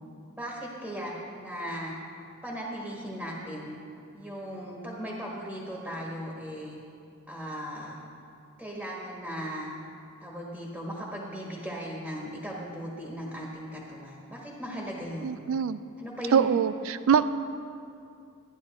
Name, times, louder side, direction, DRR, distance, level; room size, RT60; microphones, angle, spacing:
voice 1, 0.3-2.0 2.4-3.8 4.1-6.8 7.3-8.0 8.6-9.7 10.2-15.4 16.0-16.5, equal, 5° right, -3 dB, 1.5 m, -37 dB
voice 2, 15.2-15.8 16.3-17.2, right 7 dB, 70° right, 14 dB, 0.3 m, -23 dB
13.0 x 10.0 x 4.3 m, 2.5 s
head